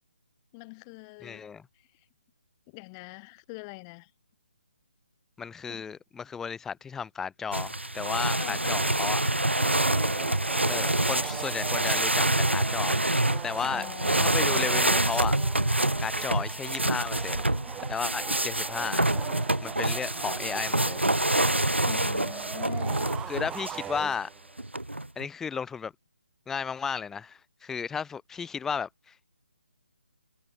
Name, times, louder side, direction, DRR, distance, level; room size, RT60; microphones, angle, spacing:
voice 1, 0.5-1.5 1.7-2.1 2.7-4.1 5.7-5.8 8.4-9.0 13.6-14.7 21.8-23.2, left 30 dB, 20° left, 7.4 m, -44 dB
voice 2, 1.2-1.6 5.4-9.2 10.7-13.0 13.4-13.9 14.2-15.4 16.0-17.4 17.9-19.0 19.6-21.1 23.3-24.3 25.2-25.9 26.5-29.3, left 6 dB, 5° left, 1.1 m, -34 dB
sound 1, 7.5-23.9 24.6-25.3, right 1 dB, 90° right, 3.9 m, -27 dB
sound 2, 9.6-24.6, right 11 dB, 10° right, 1.3 m, -41 dB
figure-of-eight pair, 145°, 6 cm